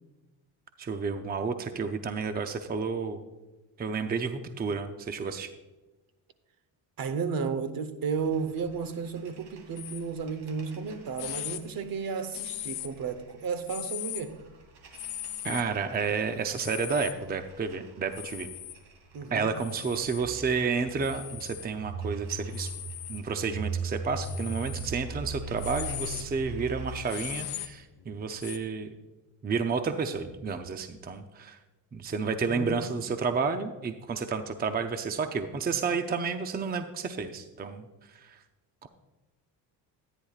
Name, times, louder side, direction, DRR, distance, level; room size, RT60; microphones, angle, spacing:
voice 1, 0.8-3.2 3.8-5.5 15.4-18.5 19.3-22.7 23.1-28.9 29.4-31.6 31.9-37.9 38.2-38.3 38.8-38.9, right 5 dB, 20° right, 0.6 m, -31 dB
voice 2, 7.0-14.4 19.1-19.5 32.4-33.0, right 5 dB, 50° right, 1.0 m, -33 dB
sound 1, 8.1-27.3, right 4 dB, 70° right, 2.3 m, -41 dB
sound 2, 9.8-10.0 10.7-10.8 11.2-11.6 12.3-13.1 13.7-14.2 14.9-15.6 16.5-17.1 18.1-18.8 19.6-20.2 21.0-21.7 22.5-23.2 24.2-24.9 25.4-28.6, left 13 dB, 60° left, 0.8 m, -39 dB
13.5 x 9.9 x 2.4 m
cardioid pair, 110°, 44 cm